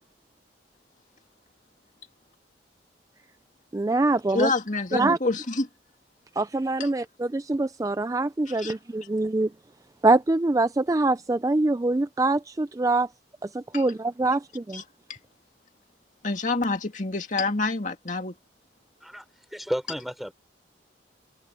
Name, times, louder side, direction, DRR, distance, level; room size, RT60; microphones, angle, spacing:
voice 1, 3.7-4.5 4.9-5.2 6.4-9.5 10.0-13.1 13.5-14.8, right 2 dB, 20° right, 0.4 m, -24 dB
voice 2, 4.3-5.7 6.8-6.9 8.5-8.8 13.7-13.9 14.7-14.8 16.2-18.3, left 3 dB, 40° left, 2.2 m, -27 dB
voice 3, 19.5-20.3, equal, ahead, 4.2 m, -32 dB
head